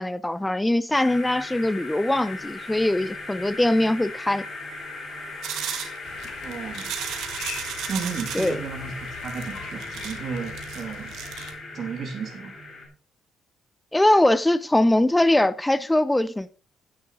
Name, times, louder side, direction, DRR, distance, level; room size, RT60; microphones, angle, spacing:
voice 1, 0.0-4.4 8.3-8.6 13.9-16.5, left 1 dB, 10° left, 0.5 m, -22 dB
sound 1, 0.9-12.9, left 3 dB, 35° left, 3.6 m, -38 dB
sound 2, 5.4-8.5 9.2-11.5, right 9 dB, 80° right, 1.6 m, -34 dB
sound 3, 6.0-11.5, left 6 dB, 90° left, 3.2 m, -43 dB
voice 2, 6.4-6.9 7.9-11.2 11.7-12.5, right 5 dB, 55° right, 2.1 m, -33 dB
9.6 x 9.1 x 3.8 m
cardioid pair, 110°, 0 cm